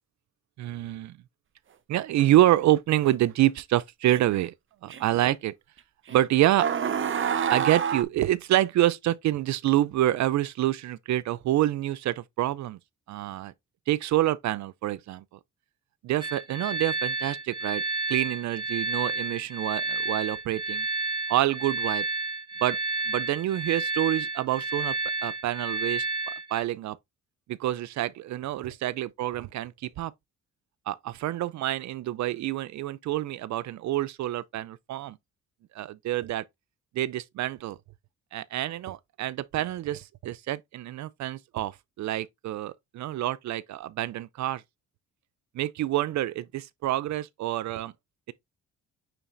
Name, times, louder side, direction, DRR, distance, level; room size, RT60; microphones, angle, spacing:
voice 1, 0.6-1.2 1.9-4.5 4.8-5.5 6.1-6.7 7.5-12.8 13.1-13.5 13.9-15.4 16.0-17.8 18.1-20.9 21.3-22.0 22.6-22.8 23.1-25.0 25.2-27.0 27.5-29.7 30.0-30.1 30.9-35.2 35.7-36.4 36.9-37.8 38.3-44.6 45.5-47.9, right 14 dB, 65° right, 0.5 m, -27 dB
sound 1, 3.1-3.2 4.1-4.4 4.9-5.0 6.1-6.2 6.6-8.0, right 8 dB, 40° right, 0.8 m, -27 dB
sound 2, 16.2-26.6, right 3 dB, 15° right, 2.1 m, -31 dB
9.0 x 4.0 x 2.6 m
cardioid pair, 90°, 30 cm